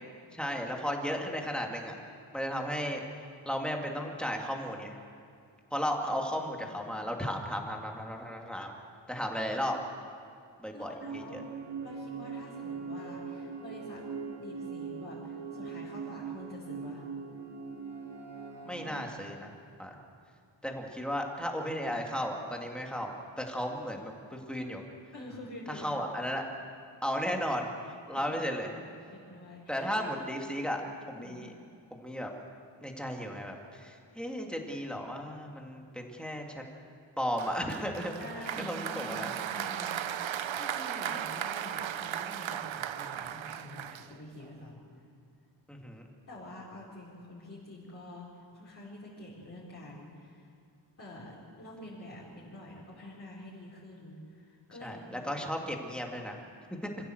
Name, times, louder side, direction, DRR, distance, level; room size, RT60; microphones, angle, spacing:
voice 1, 0.3-1.9 2.3-3.0 3.5-5.0 5.7-8.7 9.1-9.8 10.6-11.4 18.6-19.5 19.8-19.9 20.6-24.8 25.7-26.4 27.0-27.7 28.1-28.8 29.7-30.8 31.1-31.5 31.9-32.3 32.8-36.6 37.2-38.2 38.6-39.3 45.7-46.1 54.8-56.4 56.7-56.9, equal, ahead, 1 dB, 2.3 m, -35 dB
voice 2, 6.4-7.3 10.7-11.4 11.8-14.0 14.4-17.0 25.1-25.9 28.1-28.8 29.1-30.1 30.6-30.7 31.1-31.4 38.2-44.8 46.3-50.5 51.0-55.5, left 1 dB, 35° left, -9 dB, 4.7 m, -47 dB
sound 1, 11.0-19.0, right 5 dB, 65° right, 2.4 m, -41 dB
Applause, 37.4-44.5, right 10 dB, 80° right, 0.7 m, -36 dB
26.5 x 15.5 x 7.9 m, 2.4 s
wide cardioid pair, 165°, 46 cm